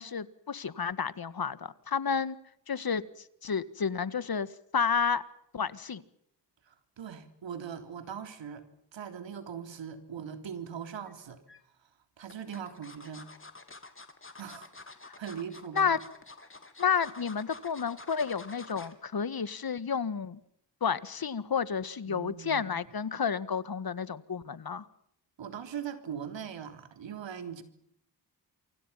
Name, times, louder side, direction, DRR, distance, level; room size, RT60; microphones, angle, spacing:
voice 1, 0.0-2.4 2.7-3.0 3.4-5.2 5.5-6.0 15.0-15.2 15.7-16.0 16.8-20.4 20.8-24.9, left 6 dB, 55° left, 1.7 m, -31 dB
voice 2, 6.7-8.7 8.9-11.4 12.2-13.3 14.4-14.7 15.2-16.0 22.1-22.7 25.4-27.6, right 8 dB, 85° right, 3.5 m, -40 dB
sound 1, 11.1-11.6 12.3-19.0 19.4-19.6 19.9-20.0, left 3 dB, 30° left, 3.9 m, -49 dB
28.0 x 25.0 x 5.8 m
cardioid pair, 60°, 44 cm